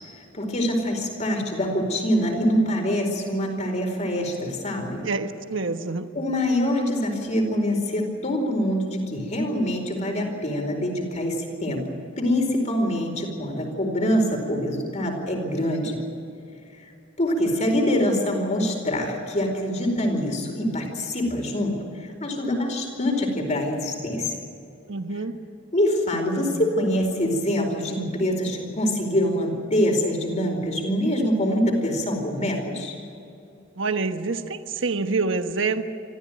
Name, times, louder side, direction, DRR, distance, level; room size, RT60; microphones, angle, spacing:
voice 1, 0.3-5.0 6.1-11.8 12.2-16.0 17.2-24.3 25.7-33.0, equal, 35° left, 3 dB, 4.7 m, -25 dB
voice 2, 5.0-6.1 24.9-25.3 33.8-35.8, right 4 dB, 70° right, 7 dB, 1.3 m, -26 dB
26.0 x 14.5 x 9.3 m, 2.6 s
head